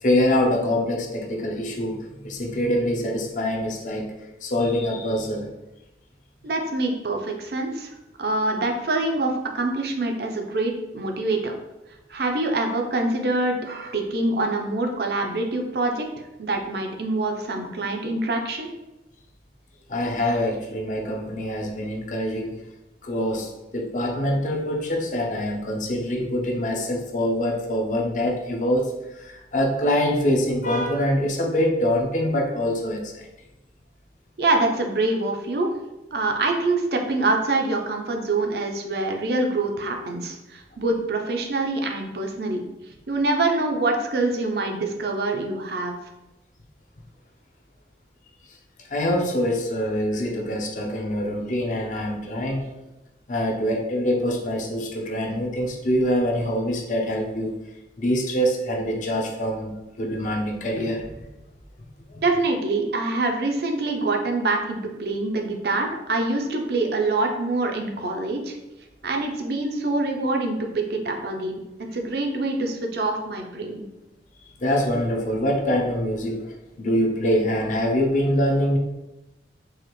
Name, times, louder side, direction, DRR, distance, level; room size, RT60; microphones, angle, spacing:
voice 1, 0.0-4.1 4.4-5.5 19.9-22.6 23.0-33.3 48.9-52.7 53.3-57.6 58.0-61.1 62.1-62.2 74.6-78.8, equal, 45° left, 1 dB, 0.6 m, -24 dB
voice 2, 6.4-7.9 8.2-11.5 12.1-16.1 16.4-18.7 34.4-35.7 36.1-42.6 43.1-45.9 62.2-68.6 69.0-71.6 71.9-73.9, right 2 dB, 60° right, 3 dB, 0.6 m, -25 dB
4.8 x 2.5 x 3.0 m, 0.97 s
head